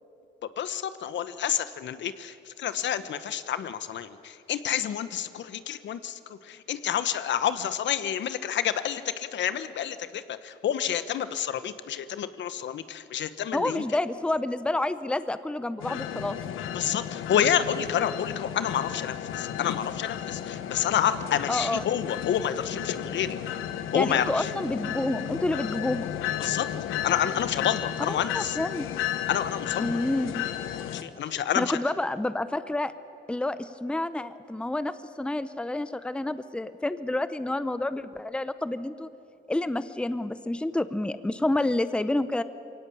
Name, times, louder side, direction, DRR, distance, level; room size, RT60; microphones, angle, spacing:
voice 1, 0.6-13.8 16.7-23.4 23.9-24.5 26.4-26.7 27.0-28.6 29.3-30.0 30.8-31.8, left 9 dB, 65° left, 13 dB, 1.0 m, -29 dB
voice 2, 13.5-16.4 21.5-21.8 23.9-26.1 28.1-28.9 29.8-30.5 31.6-32.9 33.3-39.1 39.5-42.4, left 2 dB, 5° left, 13 dB, 0.8 m, -29 dB
sound 1, 15.8-31.0, left 10 dB, 90° left, 1.1 m, -33 dB
22.5 x 17.0 x 8.5 m, 2.7 s
cardioid pair, 90°, 20 cm